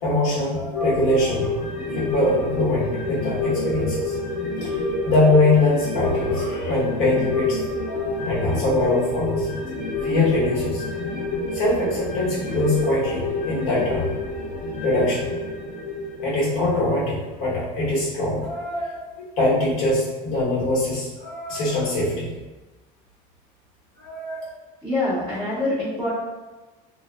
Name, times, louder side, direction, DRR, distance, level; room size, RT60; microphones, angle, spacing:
voice 1, 0.0-1.5 1.9-4.2 4.6-4.7 5.0-7.6 7.9-9.5 10.0-10.8 11.5-14.1 14.8-15.2 16.2-22.3 24.0-24.5, left 2 dB, 80° left, -6 dB, 1.0 m, -23 dB
sound 1, 0.7-17.5 17.9-18.0, left 2 dB, 55° left, 0.5 m, -28 dB
voice 2, 24.8-26.1, left 2 dB, ahead, -14 dB, 0.5 m, -25 dB
2.6 x 2.1 x 2.2 m, 1.2 s
cardioid pair, 180°, 18 cm